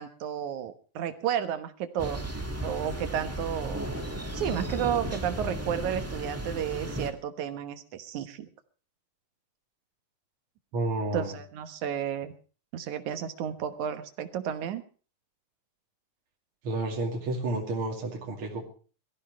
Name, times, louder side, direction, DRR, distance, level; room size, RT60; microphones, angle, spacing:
voice 1, 0.0-2.2 2.6-3.8 4.3-8.5 11.1-12.3 12.7-14.8, right 9 dB, 75° right, 10 dB, 2.7 m, -32 dB
Thunder, 2.0-7.1, right 1 dB, 10° right, 1.0 m, -34 dB
voice 2, 10.7-11.4 16.6-18.6, right 2 dB, 45° right, -1 dB, 3.3 m, -31 dB
23.0 x 15.0 x 3.2 m, 0.38 s
omnidirectional pair, 3.5 m